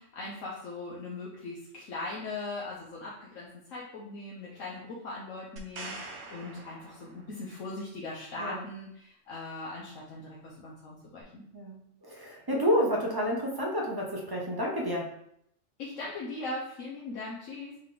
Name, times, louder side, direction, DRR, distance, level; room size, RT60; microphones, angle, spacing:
voice 1, 0.0-11.4 15.8-17.8, left 2 dB, 80° left, -5 dB, 1.2 m, -40 dB
sound 1, 5.6-7.5 11.2-11.3, right 3 dB, 75° right, 1.2 m, -44 dB
voice 2, 11.5-15.1, equal, 25° right, -1 dB, 0.6 m, -30 dB
3.8 x 3.3 x 3.7 m, 0.71 s
omnidirectional pair, 1.3 m